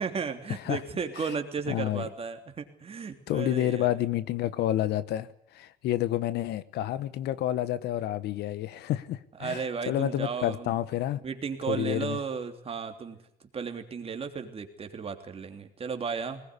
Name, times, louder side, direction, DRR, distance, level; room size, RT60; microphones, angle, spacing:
voice 1, 0.0-3.9 9.4-10.8 11.2-13.2 13.5-16.4, right 6 dB, 35° right, 3.1 m, -34 dB
voice 2, 1.7-2.1 3.3-5.3 5.5-11.2 11.7-12.2, left 13 dB, 75° left, 1.2 m, -29 dB
20.5 x 19.5 x 10.0 m
cardioid pair, 110°, 17 cm